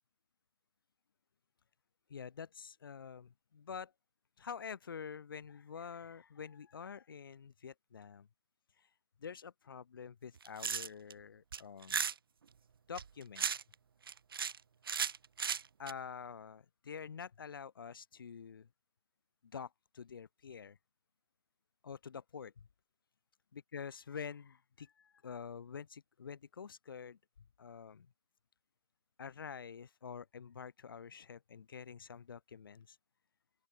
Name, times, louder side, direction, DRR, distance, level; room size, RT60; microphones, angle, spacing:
voice 1, 2.1-3.9 4.4-8.3 8.8-8.9 9.2-12.0 12.9-13.4 15.8-18.7 19.4-20.8 21.8-22.7 23.5-27.2 27.6-28.1 29.2-33.0, left 6 dB, 75° left, 4.4 m, -47 dB
sound 1, 10.4-11.1 11.5-12.1 12.9-13.7 14.1-14.6 14.9-15.9, right 6 dB, 75° right, 1.2 m, -35 dB
open air
hypercardioid pair, 145°, 12 cm